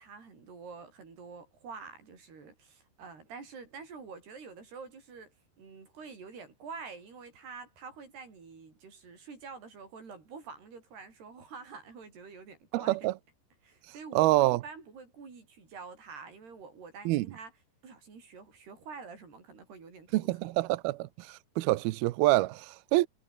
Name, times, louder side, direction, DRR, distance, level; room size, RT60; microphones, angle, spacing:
voice 1, 0.0-13.1 13.6-17.6 17.8-20.6, right 5 dB, 60° right, 8.6 m, -47 dB
voice 2, 12.7-13.1 14.2-14.6 17.1-17.3 20.1-23.1, right 18 dB, 80° right, 2.3 m, -26 dB
omnidirectional pair, 5.2 m